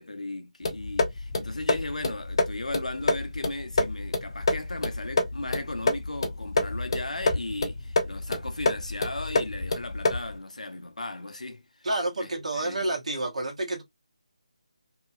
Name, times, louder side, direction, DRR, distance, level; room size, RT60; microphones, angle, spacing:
voice 1, 0.0-11.9 12.2-12.9, left 2 dB, 80° left, 0.8 m, -36 dB
sound 1, 0.6-10.4, left 2 dB, 45° left, 0.7 m, -28 dB
voice 2, 11.8-13.8, right 2 dB, 70° right, 1.1 m, -29 dB
2.9 x 2.8 x 2.3 m
figure-of-eight pair, 155°, 4 cm